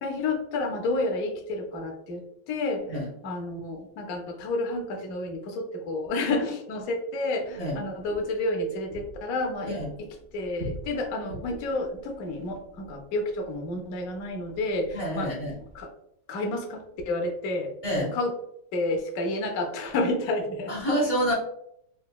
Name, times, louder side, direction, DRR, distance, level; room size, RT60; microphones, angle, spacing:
voice 1, 0.0-2.9 3.2-15.3 15.7-15.9 16.3-18.3 18.7-20.7, left 2 dB, 65° left, 2 dB, 0.9 m, -30 dB
sound 1, 7.5-15.8, equal, 60° right, 1.0 m, -46 dB
voice 2, 14.9-15.5 17.8-18.1 20.7-21.3, equal, 40° left, -6 dB, 0.4 m, -27 dB
4.1 x 2.7 x 2.2 m, 0.72 s
omnidirectional pair, 2.1 m